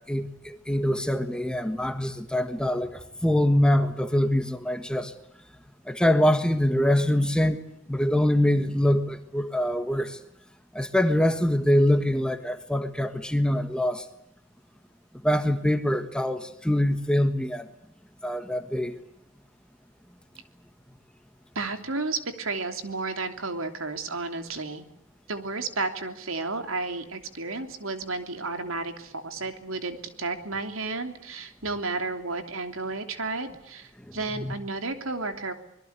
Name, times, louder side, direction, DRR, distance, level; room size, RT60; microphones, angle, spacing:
voice 1, 0.0-5.1 5.8-7.6 7.9-10.2 10.7-14.1 15.2-17.7 18.2-18.9 34.1-34.5, left 1 dB, 5° left, 1.5 m, -24 dB
voice 2, 21.5-24.8 25.3-35.5, right 3 dB, 75° right, 3.1 m, -32 dB
25.5 x 21.5 x 8.2 m
head